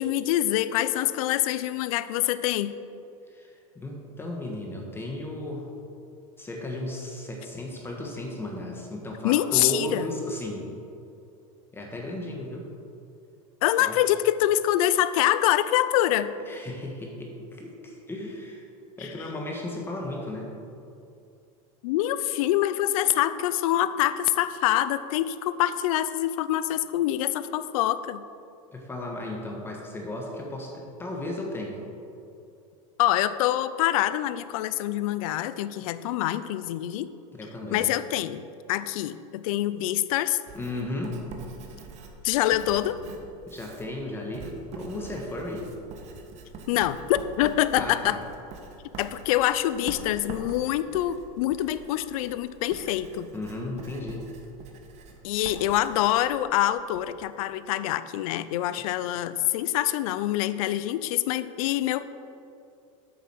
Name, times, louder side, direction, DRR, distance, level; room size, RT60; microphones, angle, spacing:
voice 1, 0.0-2.7 9.2-10.1 13.6-16.3 19.0-19.1 21.8-28.2 33.0-37.1 37.7-40.4 42.2-43.0 46.7-48.2 49.0-53.3 55.2-62.1, left 13 dB, 70° left, 14 dB, 0.5 m, -25 dB
voice 2, 3.3-5.6 6.4-10.7 11.7-12.7 13.8-13.9 16.5-18.7 19.0-20.5 28.7-31.8 37.3-37.8 40.5-41.2 43.5-45.7 46.7-46.9 47.7-48.2 53.3-54.3, left 1 dB, 10° left, 0 dB, 1.2 m, -35 dB
Writing, 40.5-57.1, right 4 dB, 35° right, 1.3 m, -45 dB
8.8 x 6.8 x 6.1 m, 2.7 s
supercardioid pair, 140°, 19 cm